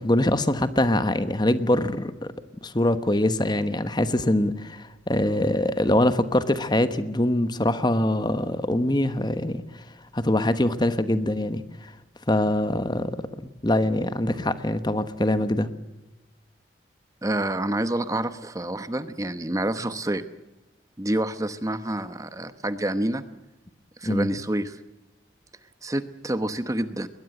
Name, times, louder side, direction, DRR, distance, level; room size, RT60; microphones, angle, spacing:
voice 1, 0.0-2.1 2.6-9.6 10.1-11.6 12.3-15.7 24.0-24.3, left 1 dB, 25° left, 11 dB, 1.1 m, -23 dB
voice 2, 17.2-20.3 21.0-23.2 24.0-24.8 25.8-27.1, right 1 dB, 20° right, 11 dB, 0.9 m, -28 dB
22.0 x 20.5 x 7.8 m, 1.0 s
head